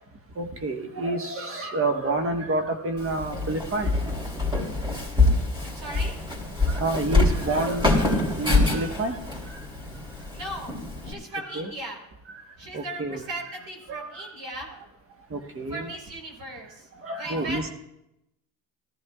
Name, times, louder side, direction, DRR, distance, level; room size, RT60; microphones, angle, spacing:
voice 1, 0.4-4.0 6.7-9.2 9.5-9.6 11.3-11.7 12.3-12.4 12.7-13.3 13.9-14.3 14.7-14.8 15.3-15.9 17.0-17.7, right 2 dB, 35° right, 5 dB, 1.4 m, -29 dB
Walk footsteps, 3.0-11.1, left 2 dB, 10° right, 3.2 m, -25 dB
voice 2, 5.6-6.2 10.3-10.8 11.0-12.0 12.6-14.7 15.7-16.9 17.2-17.7, right 1 dB, 60° right, 1 dB, 4.2 m, -37 dB
18.0 x 14.0 x 2.4 m, 0.84 s
cardioid pair, 95°, 40 cm